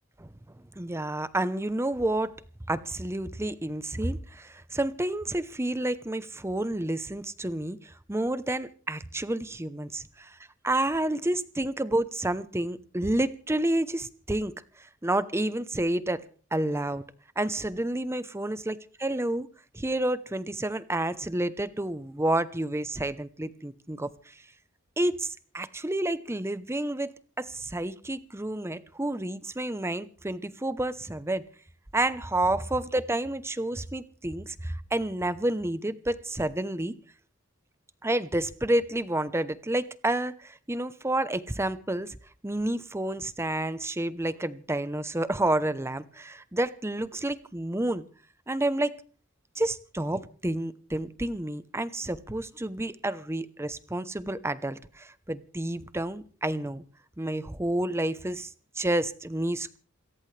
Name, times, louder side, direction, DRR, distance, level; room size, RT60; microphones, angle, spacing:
voice 1, 0.8-2.3 2.7-10.4 10.6-16.2 16.5-17.0 17.4-19.5 19.7-24.1 25.0-27.1 27.4-31.4 31.9-36.9 38.0-42.2 42.4-48.0 48.5-49.0 49.5-56.8 57.2-58.5 58.8-59.8, right 1 dB, 15° right, 14 dB, 0.9 m, -29 dB
28.0 x 14.5 x 3.4 m, 0.41 s
head